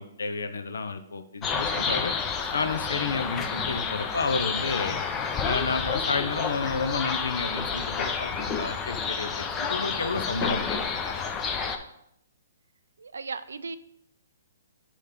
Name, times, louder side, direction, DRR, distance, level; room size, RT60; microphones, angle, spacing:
voice 1, 0.0-2.1 2.5-5.0 5.4-11.1, left 4 dB, 80° left, 9 dB, 0.6 m, -31 dB
sound 1, 1.4-11.8, left 5 dB, 20° left, 0.6 m, -30 dB
voice 2, 13.0-13.8, right 4 dB, 80° right, 13 dB, 0.4 m, -36 dB
6.4 x 3.0 x 5.2 m, 0.74 s
hypercardioid pair, 135°, 0 cm